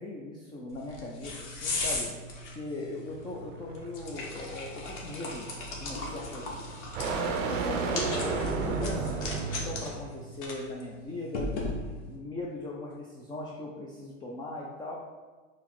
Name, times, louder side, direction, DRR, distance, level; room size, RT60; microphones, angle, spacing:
voice 1, 0.0-2.1 2.5-6.6 7.4-9.3 9.6-11.5 12.0-14.9, left 2 dB, 15° left, -3 dB, 0.3 m, -39 dB
sound 1, 0.7-12.2, left 2 dB, 65° left, 1.0 m, -38 dB
sound 2, 3.1-10.1, right 4 dB, 80° right, 0.6 m, -33 dB
4.0 x 2.0 x 4.1 m, 1.4 s
hypercardioid pair, 90°, 38 cm